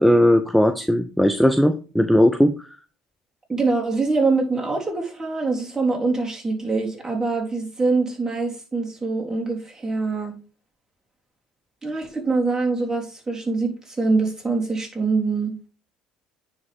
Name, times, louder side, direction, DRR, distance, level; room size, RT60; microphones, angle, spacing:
voice 1, 0.0-2.7, equal, ahead, 0.8 m, -18 dB
voice 2, 3.5-10.3 11.8-15.5, right 3 dB, 20° right, 3.6 m, -24 dB
9.6 x 5.1 x 3.6 m
hypercardioid pair, 65°, 3 cm